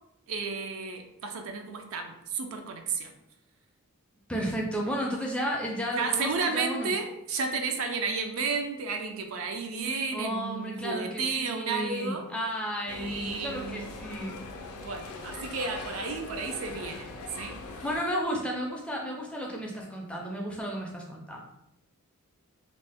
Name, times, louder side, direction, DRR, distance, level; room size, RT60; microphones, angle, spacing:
voice 1, 0.3-3.1 5.9-12.3 12.9-13.9 14.8-17.8, right 4 dB, 65° right, 4 dB, 0.4 m, -32 dB
voice 2, 4.3-6.9 10.1-14.4 17.8-21.4, equal, 5° left, -2 dB, 0.4 m, -33 dB
sound 1, 12.9-18.0, left 3 dB, 80° left, 0.4 m, -41 dB
2.5 x 2.0 x 3.4 m, 0.84 s
head